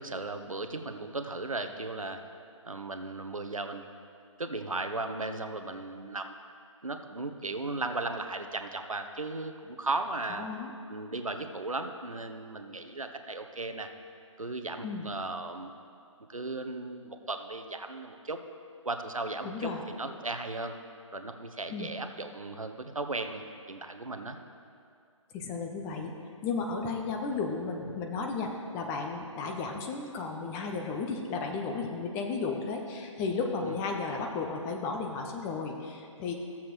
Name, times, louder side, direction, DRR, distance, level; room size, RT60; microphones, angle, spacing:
voice 1, 0.0-2.2 2.6-3.8 4.4-6.3 6.8-10.5 10.9-13.9 14.4-15.7 16.3-18.4 18.8-20.7 21.1-23.4 23.7-24.4 33.6-33.8, right 2 dB, 90° right, 7 dB, 0.8 m, -36 dB
voice 2, 10.4-10.7 14.8-15.1 19.4-19.8 21.7-21.9 25.3-26.1 26.4-36.3, left 4 dB, 15° left, 2 dB, 0.6 m, -34 dB
15.0 x 7.1 x 3.1 m, 2.4 s
figure-of-eight pair, 140°, 17 cm